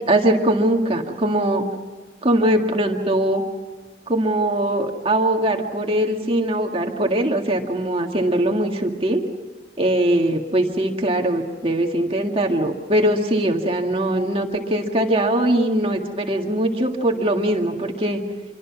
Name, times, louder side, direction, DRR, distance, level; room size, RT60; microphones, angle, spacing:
voice 1, 0.1-1.7 2.2-3.4 4.1-9.2 9.8-18.2, right 1 dB, 35° right, 2 dB, 2.0 m, -21 dB
27.0 x 23.5 x 6.1 m, 1.4 s
head